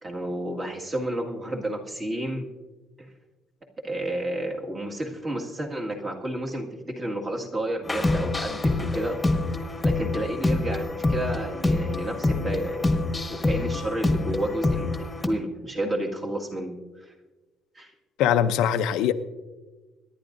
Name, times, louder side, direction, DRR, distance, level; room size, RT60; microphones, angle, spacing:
voice 1, 0.0-2.5 3.0-3.1 3.8-9.2 9.8-13.0 13.3-14.9 15.3-17.1 17.8-17.9, right 1 dB, 25° right, 0 dB, 1.9 m, -31 dB
sound 1, 7.8-15.3, left 2 dB, 10° left, 1.4 m, -26 dB
voice 2, 18.2-19.1, left 9 dB, 80° left, 9 dB, 0.6 m, -22 dB
24.0 x 11.0 x 2.6 m, 1.2 s
cardioid pair, 145°, 0 cm